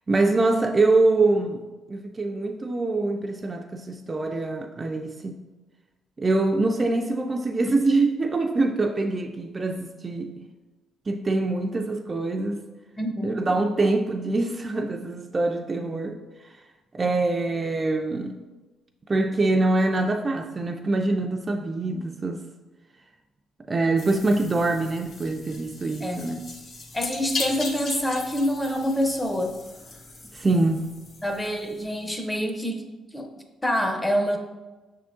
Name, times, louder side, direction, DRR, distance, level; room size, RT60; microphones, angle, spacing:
voice 1, 0.1-1.6 1.9-5.4 6.2-10.5 11.1-12.6 13.2-16.5 16.9-18.4 19.1-22.4 23.7-26.4 30.3-30.9, right 2 dB, 30° right, 4 dB, 0.3 m, -24 dB
voice 2, 13.0-13.5 26.0-26.2 26.9-29.5 31.2-32.9 33.1-33.3 33.6-34.4, equal, 10° left, 4 dB, 0.6 m, -26 dB
sound 1, 24.0-32.1, left 3 dB, 55° left, 0.7 m, -38 dB
5.9 x 3.6 x 2.5 m, 1.2 s
cardioid pair, 90°, 0 cm